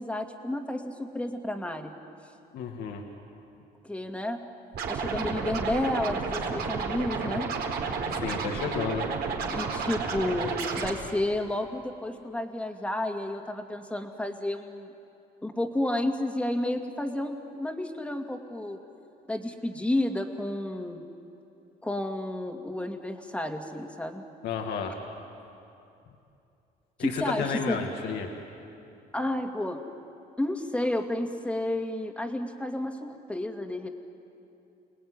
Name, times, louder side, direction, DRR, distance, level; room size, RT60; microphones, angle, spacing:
voice 1, 0.0-1.9 3.8-4.4 4.9-7.5 9.5-14.9 15.4-18.8 19.3-21.1 21.8-24.2 27.0-27.8 29.1-29.8 30.4-33.9, left 1 dB, 5° left, 4 dB, 2.3 m, -31 dB
voice 2, 2.5-3.0 8.1-9.1 24.4-25.0 27.0-28.3, left 6 dB, 75° left, 2 dB, 2.2 m, -32 dB
Scratching (performance technique), 4.7-10.9, right 5 dB, 70° right, 4.3 m, -31 dB
29.5 x 19.5 x 9.7 m, 2.7 s
cardioid pair, 110°, 17 cm